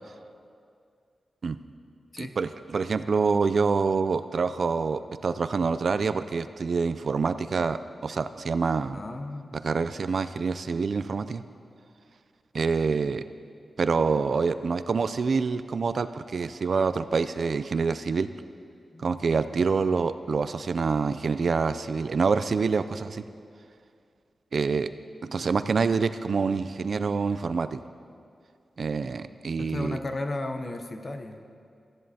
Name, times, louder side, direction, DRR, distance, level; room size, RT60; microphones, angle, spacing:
voice 1, 2.2-9.0 9.6-11.4 12.5-13.2 13.8-18.3 19.0-23.2 24.5-24.9 25.2-27.8 28.8-30.0, right 5 dB, 55° right, 12 dB, 0.3 m, -26 dB
voice 2, 8.9-9.6 18.9-19.1 29.6-31.4, left 2 dB, 35° left, 6 dB, 0.6 m, -34 dB
15.0 x 10.5 x 2.8 m, 2.3 s
wide cardioid pair, 155°, 0 cm